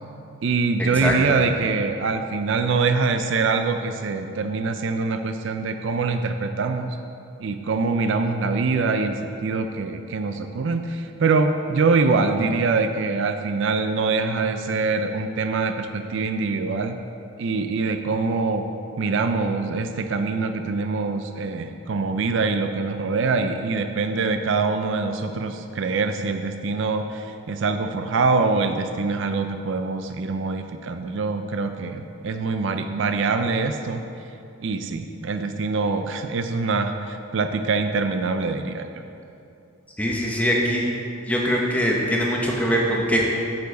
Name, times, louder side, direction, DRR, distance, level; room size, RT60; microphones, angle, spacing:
voice 1, 0.4-7.0 7.4-17.0 17.4-18.7 19.0-34.0 34.6-38.9, right 4 dB, 60° right, 7 dB, 0.4 m, -24 dB
voice 2, 40.0-40.8 41.3-43.3, equal, 5° left, -2 dB, 1.0 m, -22 dB
9.5 x 6.9 x 4.0 m, 2.7 s
head